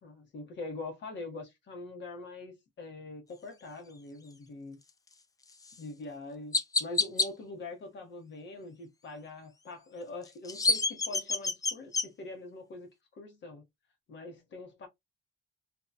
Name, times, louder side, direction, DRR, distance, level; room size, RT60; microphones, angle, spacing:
voice 1, 0.0-4.8 5.8-6.5 6.8-13.6 14.1-14.9, left 2 dB, 65° left, 1.0 m, -43 dB
Chirp tweet, 5.6-5.8 6.5-7.3 10.2-12.1, left 3 dB, 20° left, 0.3 m, -28 dB
2.8 x 2.2 x 2.3 m
cardioid pair, 90°, 20 cm